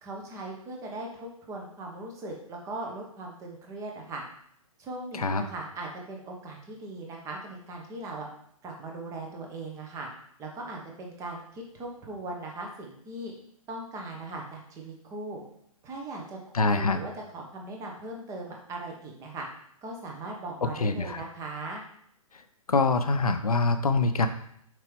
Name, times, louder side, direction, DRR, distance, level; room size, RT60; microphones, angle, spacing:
voice 1, 0.0-4.2 4.8-8.3 8.6-10.1 10.4-13.3 13.7-15.4 15.8-19.5 19.8-21.8, right 2 dB, 15° right, 0 dB, 1.2 m, -39 dB
voice 2, 16.5-17.0 20.8-21.2 22.7-24.3, left 3 dB, 85° left, 9 dB, 0.6 m, -24 dB
5.9 x 4.7 x 3.5 m, 0.69 s
figure-of-eight pair, 130°, 18 cm